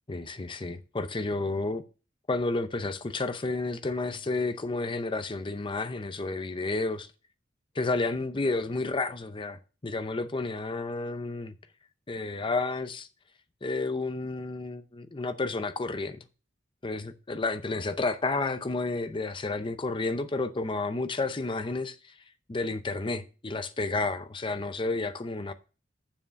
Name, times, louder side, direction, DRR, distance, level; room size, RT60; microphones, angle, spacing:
voice 1, 0.1-1.8 2.3-7.1 7.7-11.5 12.1-13.1 13.6-16.2 16.8-22.1 22.5-25.5, left 3 dB, 25° left, 0.6 m, -31 dB
7.2 x 5.5 x 6.4 m
head